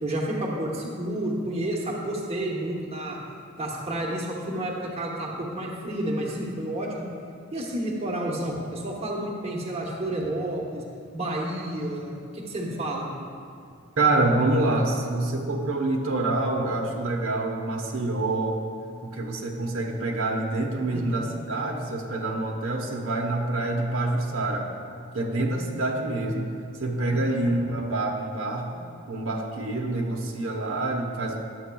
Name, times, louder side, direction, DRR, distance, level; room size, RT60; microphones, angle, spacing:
voice 1, 0.0-3.2 3.6-7.1 7.5-10.9 11.1-13.1 20.9-21.3 27.1-27.5, right 1 dB, 30° right, -2 dB, 0.9 m, -30 dB
voice 2, 14.0-18.6 19.0-24.7 25.1-26.5 26.8-31.4, right 2 dB, 80° right, 0 dB, 0.9 m, -26 dB
11.5 x 7.9 x 2.3 m, 2.5 s
head